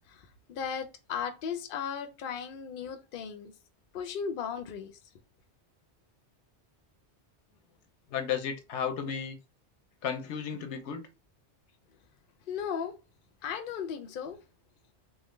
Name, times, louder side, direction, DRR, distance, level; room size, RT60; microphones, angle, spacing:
voice 1, 0.1-3.5 3.9-5.0 12.5-13.0 13.4-14.4, left 7 dB, 60° left, 0.7 m, -36 dB
voice 2, 8.1-9.4 10.0-11.1, left 7 dB, 85° left, 0.9 m, -33 dB
3.4 x 2.0 x 3.1 m
omnidirectional pair, 1.2 m